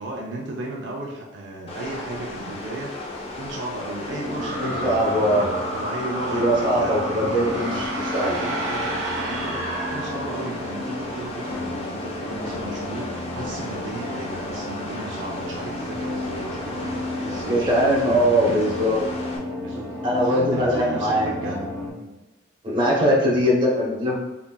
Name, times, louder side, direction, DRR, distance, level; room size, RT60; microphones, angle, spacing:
voice 1, 0.0-3.1 3.4-7.8 8.3-18.8 19.5-21.6 21.9-22.2 23.1-23.9, right 2 dB, 65° right, -1 dB, 0.5 m, -35 dB
sound 1, 1.7-19.4, left 2 dB, 30° left, 0.5 m, -36 dB
sound 2, 4.1-21.9, left 1 dB, 5° left, 1.0 m, -33 dB
voice 2, 4.4-5.5 6.3-8.4 17.5-19.1 20.0-21.7 22.6-24.2, equal, 25° right, -4 dB, 0.9 m, -21 dB
sound 3, 4.4-10.8, right 1 dB, 80° right, 1.0 m, -31 dB
3.9 x 3.3 x 2.2 m, 1.1 s
head